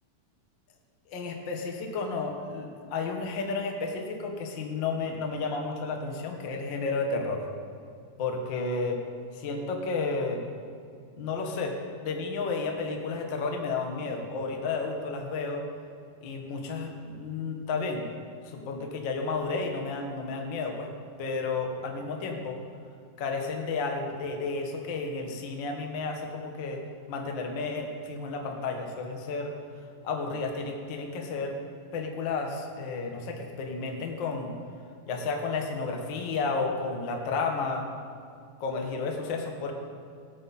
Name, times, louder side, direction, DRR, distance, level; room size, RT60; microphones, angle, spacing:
voice 1, 1.1-7.4 8.2-9.0 9.3-10.4 11.1-15.6 16.2-18.0 18.4-20.9 21.2-22.6 23.2-26.8 27.1-29.5 30.0-31.6 31.9-34.5 35.1-37.9 38.6-39.7, left 4 dB, 60° left, 2 dB, 1.2 m, -32 dB
17.5 x 8.9 x 4.2 m, 2.3 s
omnidirectional pair, 3.9 m